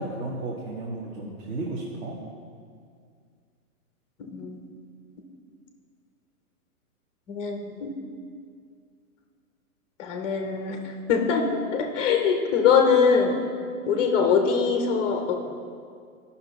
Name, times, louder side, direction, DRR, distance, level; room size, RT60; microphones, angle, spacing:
voice 1, 0.0-2.2, right 2 dB, 40° right, -3 dB, 1.1 m, -33 dB
voice 2, 4.2-4.6 7.3-7.9 10.0-10.8 11.1-13.4 13.9-15.5, left 6 dB, 15° left, 3 dB, 0.5 m, -23 dB
12.5 x 5.7 x 3.9 m, 2.2 s
hypercardioid pair, 145°, 45 cm